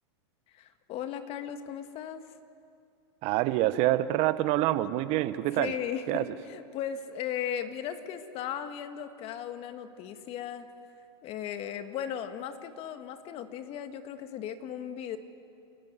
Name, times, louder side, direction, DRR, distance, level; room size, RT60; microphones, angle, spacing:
voice 1, 0.5-2.2 5.5-10.7 11.2-15.2, left 9 dB, 40° left, 9 dB, 1.6 m, -37 dB
voice 2, 3.2-5.7 6.1-6.2, right 15 dB, 50° right, 14 dB, 0.9 m, -26 dB
29.0 x 12.0 x 9.5 m, 2.4 s
hypercardioid pair, 110°, 15 cm